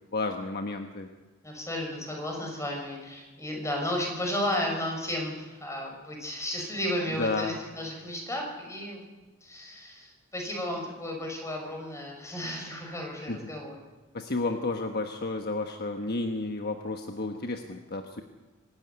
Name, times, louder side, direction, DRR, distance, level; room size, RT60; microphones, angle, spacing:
voice 1, 0.1-1.1 7.2-7.6 13.3-13.4 14.1-18.2, left 3 dB, 45° left, 5 dB, 1.2 m, -31 dB
voice 2, 1.4-9.0 9.4-13.7, left 1 dB, 15° left, 1 dB, 6.3 m, -33 dB
25.0 x 13.0 x 9.6 m, 1.2 s
head